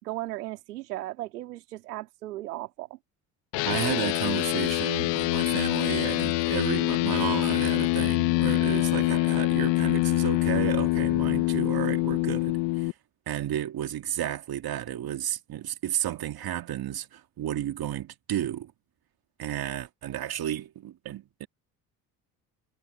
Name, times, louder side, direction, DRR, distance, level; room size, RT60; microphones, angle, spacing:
voice 1, 0.0-3.0, right 16 dB, 85° right, 2.6 m, -36 dB
sound 1, 3.5-12.9, left 22 dB, 70° left, 1.6 m, -25 dB
voice 2, 3.6-12.9 13.3-18.7 19.4-21.5, right 11 dB, 50° right, 2.5 m, -32 dB
hypercardioid pair, 65°, 46 cm